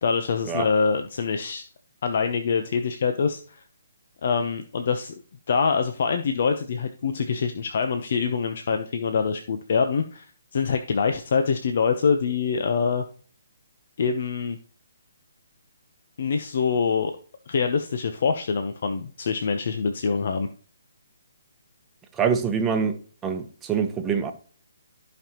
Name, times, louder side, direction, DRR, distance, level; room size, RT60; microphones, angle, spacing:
voice 1, 0.0-1.7 2.0-3.6 4.2-5.1 5.5-10.3 10.5-13.0 14.0-14.6 16.2-17.1 17.5-20.5, left 5 dB, 55° left, 0.9 m, -25 dB
voice 2, 22.2-22.9 23.2-24.3, right 6 dB, 15° right, 1.0 m, -24 dB
14.0 x 5.4 x 3.0 m
hypercardioid pair, 150°, 0 cm